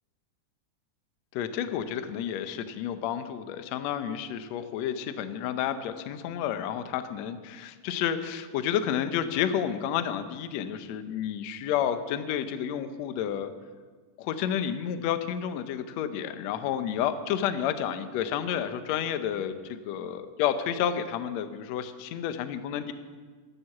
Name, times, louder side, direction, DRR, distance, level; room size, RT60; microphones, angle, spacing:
voice 1, 1.3-13.5 14.2-22.9, left 9 dB, 75° left, 10 dB, 1.7 m, -30 dB
12.5 x 11.0 x 7.2 m, 1.5 s
omnidirectional pair, 4.0 m